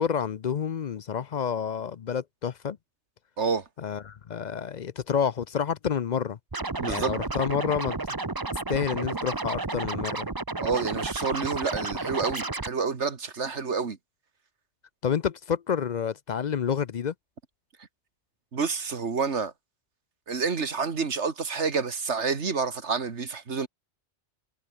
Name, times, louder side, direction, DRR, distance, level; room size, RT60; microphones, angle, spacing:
voice 1, 0.0-2.8 3.8-6.4 6.8-8.0 8.7-10.3 15.0-17.1, left 7 dB, 50° left, 0.6 m, -29 dB
voice 2, 3.4-3.7 6.8-7.1 10.6-14.0 18.5-19.5 20.3-23.7, right 5 dB, 80° right, 2.1 m, -28 dB
Scratching (performance technique), 6.5-12.7, right 3 dB, 20° right, 1.0 m, -32 dB
omnidirectional pair, 1.2 m